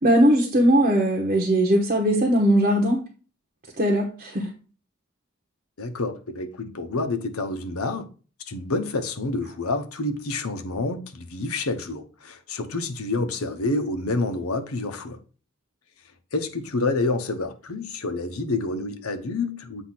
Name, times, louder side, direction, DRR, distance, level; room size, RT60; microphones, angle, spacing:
voice 1, 0.0-3.0 3.8-4.5, equal, 40° right, 1.1 m, -19 dB
voice 2, 5.8-8.1 8.4-15.2 16.3-19.8, left 2 dB, 85° left, 0.9 m, -28 dB
8.0 x 2.7 x 5.8 m
head